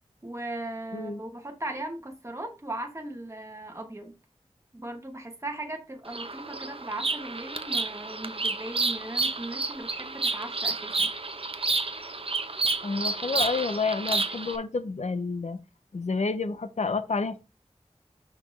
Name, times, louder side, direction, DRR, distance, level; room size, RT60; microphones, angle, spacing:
voice 1, 0.2-4.1 4.7-11.1, right 1 dB, 25° right, 1.1 m, -38 dB
Bird vocalization bird call bird song, 6.1-14.6, right 3 dB, 50° right, 0.7 m, -30 dB
voice 2, 12.8-15.6 15.9-17.4, left 4 dB, 70° left, 0.6 m, -29 dB
5.9 x 5.6 x 3.1 m
wide cardioid pair, 60°, 12 cm